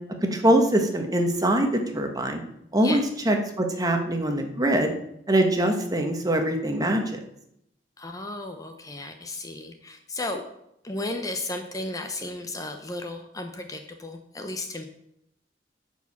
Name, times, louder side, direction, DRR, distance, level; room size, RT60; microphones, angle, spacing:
voice 1, 0.2-2.4 2.7-4.9 5.3-7.0, right 1 dB, 20° right, 4 dB, 1.3 m, -23 dB
voice 2, 8.0-10.4 10.8-14.8, left 2 dB, 20° left, 5 dB, 0.7 m, -34 dB
10.0 x 4.8 x 7.2 m, 0.78 s
head